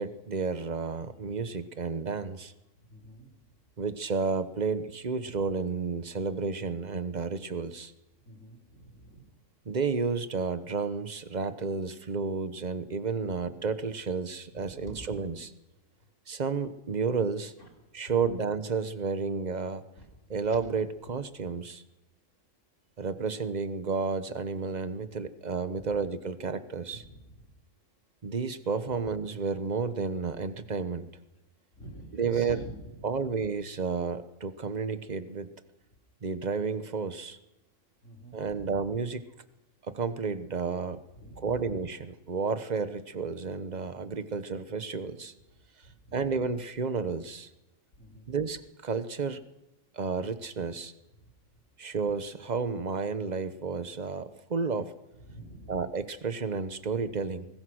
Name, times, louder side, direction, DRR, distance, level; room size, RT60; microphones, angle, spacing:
voice 1, 0.0-2.5 3.8-7.9 9.6-15.5 16.3-17.5 17.9-19.8 20.3-21.8 23.0-27.0 28.2-31.1 32.1-32.6 33.0-35.5 36.2-37.4 38.3-39.2 39.9-41.0 41.4-45.3 46.1-47.5 48.3-49.4 49.9-50.9 51.8-54.9 55.7-57.5, right 5 dB, 35° right, 12 dB, 1.1 m, -31 dB
voice 2, 2.8-3.5 8.2-9.3 14.8-15.0 17.6-17.7 20.0-20.1 25.8-26.0 26.9-27.5 31.7-33.1 38.0-38.7 41.1-41.7 45.5-45.6 45.8-46.4 47.9-48.3 51.2-51.3 55.2-55.8, right 1 dB, 65° left, 1 dB, 4.4 m, -47 dB
22.0 x 19.5 x 6.4 m, 0.99 s
omnidirectional pair, 1.4 m